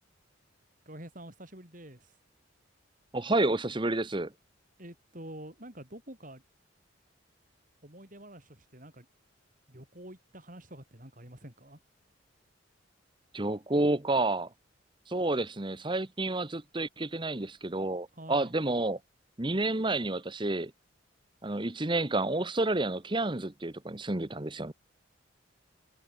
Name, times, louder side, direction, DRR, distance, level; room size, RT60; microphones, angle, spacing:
voice 1, 0.8-2.2 4.8-6.4 7.8-9.1 9.7-11.8 18.1-18.5, right 1 dB, 40° right, 6.7 m, -47 dB
voice 2, 3.1-4.3 13.3-14.5 15.1-19.0 19.4-20.7 21.4-24.7, right 2 dB, 25° right, 1.1 m, -30 dB
head